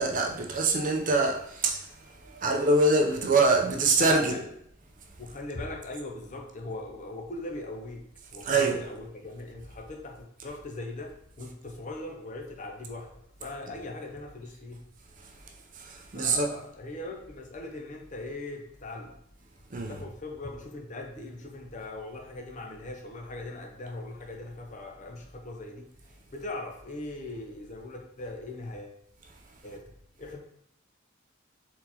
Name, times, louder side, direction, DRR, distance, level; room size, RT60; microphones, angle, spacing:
voice 1, 0.0-4.4 8.4-8.8 15.8-16.5 19.7-20.0, right 3 dB, 40° right, 0.6 m, -25 dB
voice 2, 4.0-4.4 5.2-8.0 8.3-14.8 16.1-19.2 19.9-25.9 26.3-29.0 29.6-29.9 30.2-30.4, left 2 dB, 40° left, 0.7 m, -40 dB
4.3 x 3.9 x 2.8 m
head